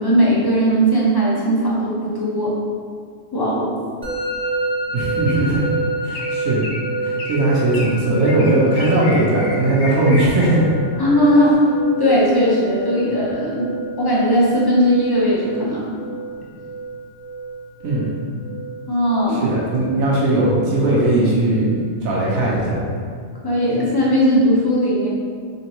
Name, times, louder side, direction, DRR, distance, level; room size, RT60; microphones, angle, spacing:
voice 1, 0.0-2.6 3.3-3.8 11.0-11.7 12.0-16.0 18.9-19.5 23.4-25.1, equal, 25° left, -6 dB, 0.5 m, -18 dB
Musical instrument, 4.0-22.9, right 3 dB, 10° right, 0.7 m, -30 dB
voice 2, 4.9-5.7 6.0-6.7 7.0-10.7 17.8-18.1 19.3-21.8 22.0-22.9, right 1 dB, 85° right, -5 dB, 1.2 m, -18 dB
sound 1, 5.3-5.6 6.1-6.4 6.6-6.8 7.2-7.4 7.7-7.9 8.3-10.5, left 2 dB, 65° left, 0.8 m, -32 dB
3.8 x 3.3 x 3.0 m, 2.1 s
omnidirectional pair, 1.4 m